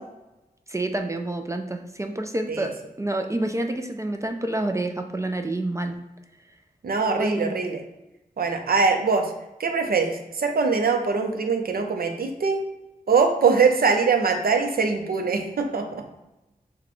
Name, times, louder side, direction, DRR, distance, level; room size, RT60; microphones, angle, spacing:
voice 1, 0.7-5.9 7.2-7.6, right 1 dB, 20° right, 5 dB, 0.3 m, -28 dB
voice 2, 6.8-7.8 8.4-9.3 9.6-12.6 13.1-16.0, right 5 dB, 70° right, 4 dB, 0.6 m, -22 dB
5.9 x 2.2 x 3.1 m, 0.99 s
wide cardioid pair, 90°, 16 cm